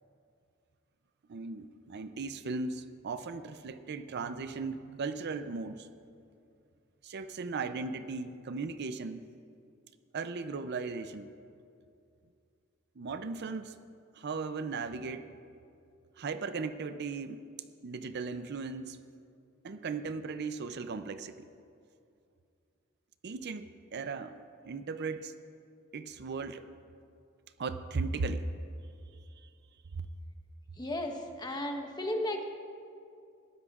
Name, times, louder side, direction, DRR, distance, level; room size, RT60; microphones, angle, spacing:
voice 1, 1.3-5.9 7.0-9.3 10.1-11.3 13.0-13.7 14.1-15.3 16.2-17.4 17.8-19.0 19.6-21.5 23.2-24.4 24.6-25.3 25.9-26.7 27.6-28.5 29.4-29.5 29.9-30.1, right 4 dB, 55° right, 11 dB, 0.5 m, -37 dB
voice 2, 30.8-32.4, left 1 dB, 20° left, 3 dB, 1.1 m, -34 dB
21.0 x 13.0 x 2.4 m, 2.5 s
head